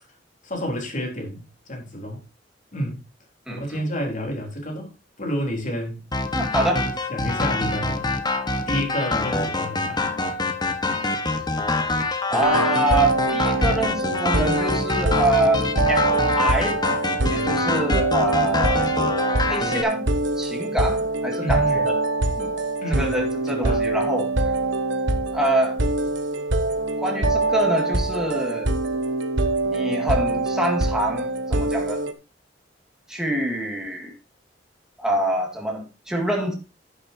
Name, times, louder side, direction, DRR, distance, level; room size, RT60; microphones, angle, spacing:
voice 1, 0.4-2.2 2.7-3.0 3.5-6.1 6.7-8.1 8.7-10.0 17.2-17.7 21.4-21.9 22.8-23.2 23.5-23.9, equal, 45° left, 3.9 m, -30 dB
voice 2, 3.5-3.8 6.3-6.9 12.3-16.1 16.4-16.8 17.3-18.8 19.4-20.1 20.4-22.0 22.4-22.5 22.9-24.3 25.3-25.8 27.0-28.7 29.7-32.0 33.1-34.1 35.0-36.5, right 1 dB, 5° right, 2.1 m, -25 dB
sound 1, 6.1-19.8, left 2 dB, 25° left, 1.4 m, -25 dB
sound 2, 12.4-32.1, right 2 dB, 85° right, 1.4 m, -24 dB
11.0 x 10.5 x 2.9 m
head